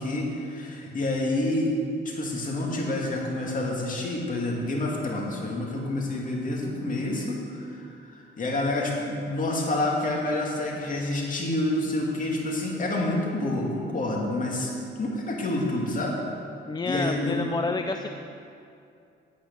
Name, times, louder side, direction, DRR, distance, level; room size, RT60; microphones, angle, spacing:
voice 1, 0.0-1.7 2.0-14.7 15.0-16.2 16.8-17.6, left 1 dB, 40° left, -2 dB, 2.5 m, -28 dB
voice 2, 16.7-18.1, left 3 dB, 20° left, 6 dB, 0.5 m, -29 dB
9.7 x 8.1 x 6.3 m, 2.5 s
cardioid pair, 90°, 20 cm